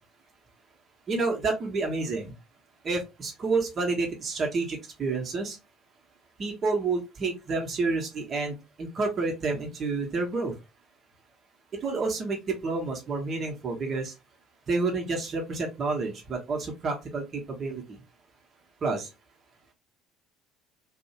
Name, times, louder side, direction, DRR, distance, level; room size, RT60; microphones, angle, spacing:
voice 1, 1.1-2.3 2.8-5.6 6.4-10.6 11.7-14.1 14.7-18.0 18.8-19.1, right 3 dB, 40° right, 1 dB, 0.8 m, -29 dB
2.6 x 2.0 x 2.7 m, 0.24 s
hypercardioid pair, 60°, 0 cm